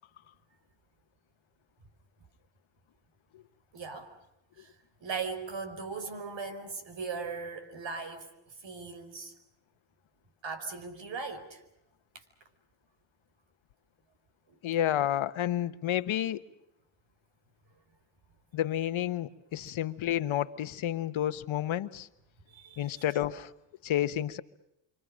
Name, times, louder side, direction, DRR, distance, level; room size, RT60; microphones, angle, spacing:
voice 1, 3.7-4.1 4.6-4.7 5.0-8.3 8.6-9.3 10.4-11.6 14.5-14.6 19.5-19.6 22.5-23.0, right 4 dB, 65° right, 5.0 m, -38 dB
voice 2, 14.6-16.4 18.5-22.1 22.8-23.5 23.8-24.4, left 12 dB, 75° left, 1.3 m, -30 dB
28.0 x 26.0 x 6.4 m
cardioid pair, 65°, 48 cm